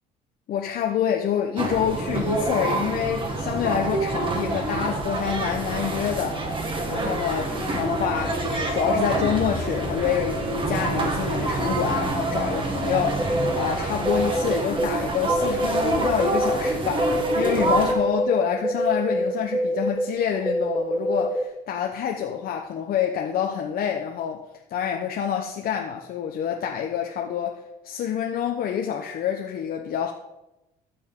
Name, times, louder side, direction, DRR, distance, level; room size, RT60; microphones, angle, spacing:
voice 1, 0.5-6.4 6.9-24.4 24.7-30.1, left 9 dB, 60° left, 0.9 m, -27 dB
sound 1, 1.6-17.9, right 2 dB, 30° right, 1.9 m, -27 dB
sound 2, 13.2-13.5 14.1-14.9 15.2-21.4, equal, 5° right, 0.9 m, -25 dB
14.0 x 7.0 x 3.8 m
cardioid pair, 110°, 17 cm